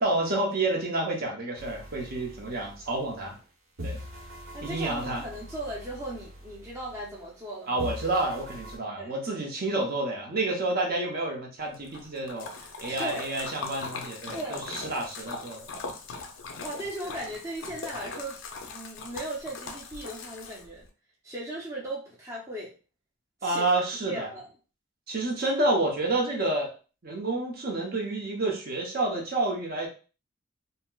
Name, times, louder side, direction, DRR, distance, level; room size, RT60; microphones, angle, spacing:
voice 1, 0.0-3.4 3.8-4.0 4.6-5.2 7.7-15.6 23.4-24.3 25.1-26.7 27.0-29.9, right 2 dB, 50° right, 0 dB, 0.8 m, -29 dB
sound 1, 1.6-3.4 3.8-7.5 7.8-8.8, left 1 dB, 80° right, 1.1 m, -42 dB
voice 2, 4.5-7.9 8.9-9.2 12.9-13.3 14.3-14.7 16.6-20.9 21.2-22.7 23.4-23.7 24.0-24.5, right 1 dB, 15° right, -4 dB, 0.5 m, -37 dB
Splash splatter, 11.7-20.9, left 4 dB, 75° left, 0.5 m, -40 dB
4.1 x 2.0 x 2.3 m, 0.35 s
head